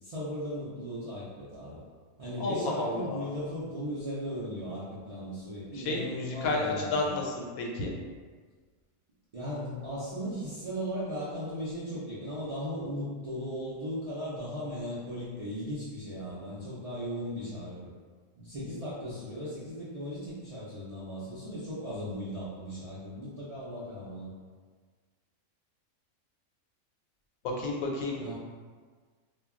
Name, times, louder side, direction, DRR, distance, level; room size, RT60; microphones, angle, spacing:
voice 1, 0.0-1.8 2.2-7.2 9.3-17.9 18.4-24.3 28.2-28.3, equal, 60° right, -11 dB, 0.3 m, -37 dB
voice 2, 2.4-3.3 5.7-7.9 27.4-28.3, left 2 dB, 90° left, -1 dB, 1.0 m, -31 dB
2.2 x 2.2 x 3.6 m, 1.5 s
omnidirectional pair, 1.4 m